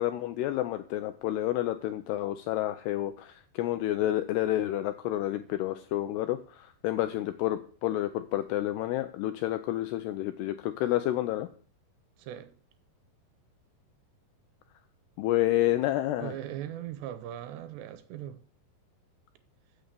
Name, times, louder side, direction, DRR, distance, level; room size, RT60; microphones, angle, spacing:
voice 1, 0.0-11.5 15.2-16.3, left 14 dB, 80° left, 2.4 m, -29 dB
voice 2, 12.2-12.5 16.2-18.4, right 11 dB, 75° right, 2.7 m, -39 dB
15.0 x 6.7 x 6.8 m
omnidirectional pair, 5.4 m